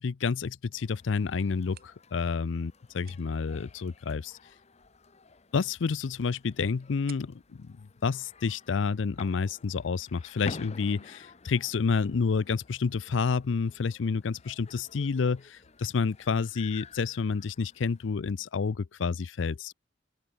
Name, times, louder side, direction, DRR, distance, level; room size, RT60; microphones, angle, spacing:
voice 1, 0.0-4.4 5.5-19.7, left 5 dB, 80° left, 0.5 m, -29 dB
sound 1, 0.7-18.1, left 3 dB, 35° left, 1.1 m, -50 dB
sound 2, 1.4-9.0, right 9 dB, 55° right, 7.1 m, -61 dB
open air
head